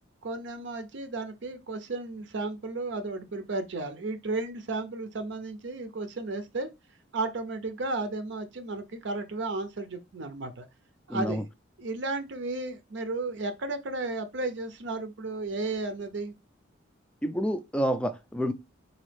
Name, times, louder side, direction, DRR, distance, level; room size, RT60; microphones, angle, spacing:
voice 1, 0.2-6.7 7.1-10.7 11.1-11.4 11.8-16.3, right 2 dB, 65° right, 0.5 m, -33 dB
voice 2, 11.1-11.4 17.2-18.5, equal, 5° left, 0.4 m, -28 dB
4.0 x 2.6 x 3.2 m
head